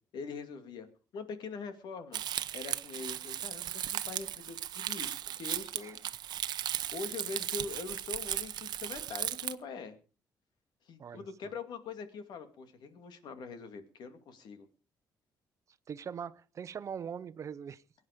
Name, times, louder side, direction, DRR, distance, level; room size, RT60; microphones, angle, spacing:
voice 1, 0.1-0.9 1.1-2.2 2.5-6.1 6.9-10.0 10.9-14.7, left 4 dB, 75° left, 2.5 m, -43 dB
Crumpling crinkling, 2.1-9.5, right 11 dB, 75° right, 0.9 m, -36 dB
voice 2, 15.9-17.8, right 7 dB, 45° right, 0.8 m, -41 dB
22.5 x 9.6 x 5.1 m
cardioid pair, 145°, 7 cm